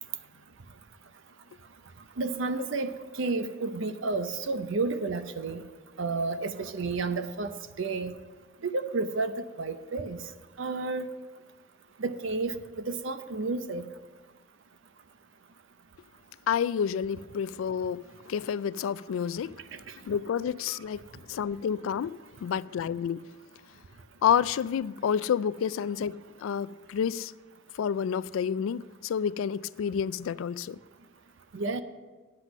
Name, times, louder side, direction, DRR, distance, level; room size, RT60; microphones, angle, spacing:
voice 1, 2.2-5.6 6.0-8.1 8.6-10.2 10.6-11.1 12.0-13.8 19.7-19.9 31.5-31.8, right 3 dB, 65° right, 0.6 m, -31 dB
voice 2, 16.5-19.5 20.0-23.3 24.2-27.3 27.7-30.8, left 8 dB, 75° left, 0.3 m, -29 dB
9.7 x 8.3 x 6.1 m
head